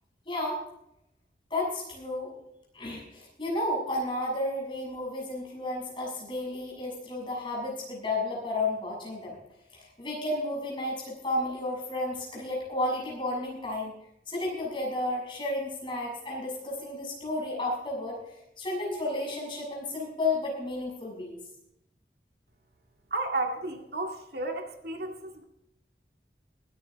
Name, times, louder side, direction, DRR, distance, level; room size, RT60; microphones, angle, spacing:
voice 1, 0.2-0.6 1.5-2.3 2.7-9.4 9.7-13.9 14.3-18.2 18.6-21.4, left 2 dB, 30° left, -3 dB, 6.7 m, -32 dB
voice 2, 23.1-25.4, right 2 dB, 65° right, 2 dB, 2.0 m, -33 dB
22.0 x 10.0 x 3.6 m, 0.83 s
head